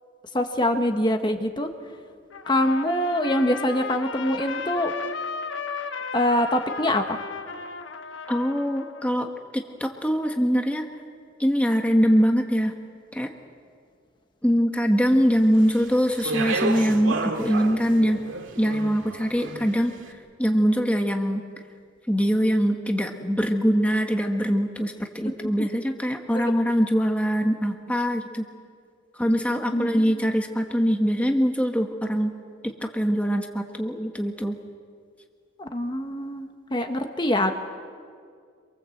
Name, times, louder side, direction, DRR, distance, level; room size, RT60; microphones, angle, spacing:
voice 1, 0.3-1.7 2.5-4.9 6.1-7.2 26.3-26.5 29.7-30.1 35.6-37.5, left 1 dB, 25° left, 5 dB, 1.3 m, -24 dB
Trumpet, 2.3-9.1, left 5 dB, 80° left, 1.3 m, -35 dB
voice 2, 8.3-10.9 11.4-12.7 13.1-13.3 14.4-18.2 18.6-20.0 20.4-21.4 22.1-28.5 29.2-32.3 32.6-34.6, equal, 5° left, 3 dB, 1.3 m, -23 dB
Speech, 15.5-19.9, right 2 dB, 85° right, 2.2 m, -31 dB
26.5 x 23.5 x 7.9 m, 2.1 s
head